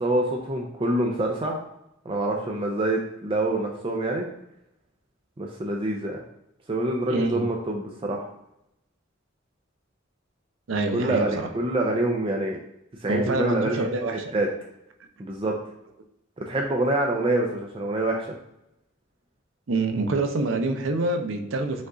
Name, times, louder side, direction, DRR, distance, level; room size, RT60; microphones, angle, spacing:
voice 1, 0.0-1.6 2.1-4.3 5.4-6.2 6.7-8.3 10.9-12.6 13.0-14.5 15.2-15.6 16.4-18.3, right 1 dB, 25° right, 1 dB, 0.5 m, -26 dB
voice 2, 7.1-7.4 10.7-11.5 13.1-14.3 19.7-21.9, right 2 dB, 80° right, 5 dB, 0.6 m, -26 dB
5.2 x 2.4 x 3.8 m, 0.82 s
head